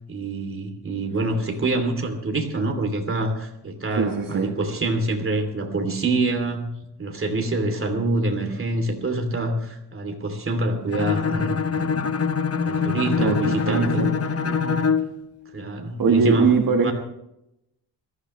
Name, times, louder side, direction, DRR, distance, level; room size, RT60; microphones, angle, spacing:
voice 1, 0.1-6.7 7.0-12.0 12.6-14.1 15.5-16.5 16.8-16.9, right 2 dB, 30° right, 4 dB, 2.9 m, -26 dB
voice 2, 3.9-4.5 13.2-14.1 14.4-15.0 16.0-16.9, right 5 dB, 55° right, 2 dB, 1.5 m, -22 dB
Bowed string instrument, 10.9-15.1, left 6 dB, 35° left, 0.9 m, -24 dB
22.0 x 14.5 x 3.2 m, 0.84 s
wide cardioid pair, 130°, 40 cm